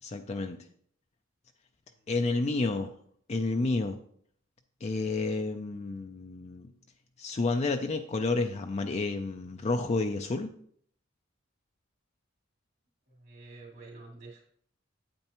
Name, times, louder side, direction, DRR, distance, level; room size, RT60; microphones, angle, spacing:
voice 1, 0.0-0.6 2.1-2.9 3.3-4.0 4.8-6.7 7.2-10.5, left 3 dB, 35° left, 5 dB, 0.4 m, -30 dB
voice 2, 1.9-2.4 13.1-14.4, right 3 dB, 60° right, -2 dB, 2.9 m, -50 dB
8.7 x 8.2 x 3.0 m, 0.62 s
head